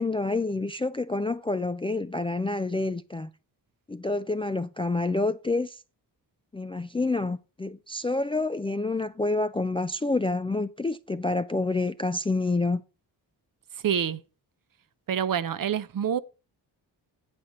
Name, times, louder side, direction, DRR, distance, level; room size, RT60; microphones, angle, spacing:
voice 1, 0.0-3.3 3.9-5.8 6.5-12.8, left 2 dB, 15° left, 0.3 m, -28 dB
voice 2, 13.8-14.2 15.1-16.2, right 8 dB, 50° right, 0.7 m, -26 dB
8.0 x 4.3 x 6.4 m
cardioid pair, 55°, 43 cm